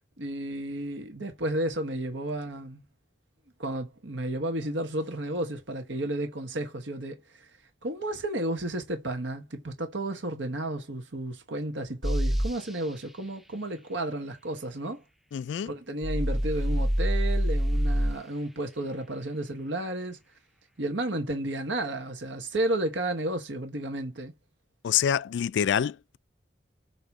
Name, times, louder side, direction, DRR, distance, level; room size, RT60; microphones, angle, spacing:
voice 1, 0.2-2.8 3.6-7.5 7.8-15.0 15.7-20.2 20.8-24.3, right 1 dB, 80° right, 1.3 m, -32 dB
sound 1, 12.0-12.6 16.0-18.2, equal, ahead, 0.5 m, -25 dB
voice 2, 15.3-15.7 24.8-26.2, left 9 dB, 75° left, 0.3 m, -26 dB
7.7 x 2.9 x 4.9 m
head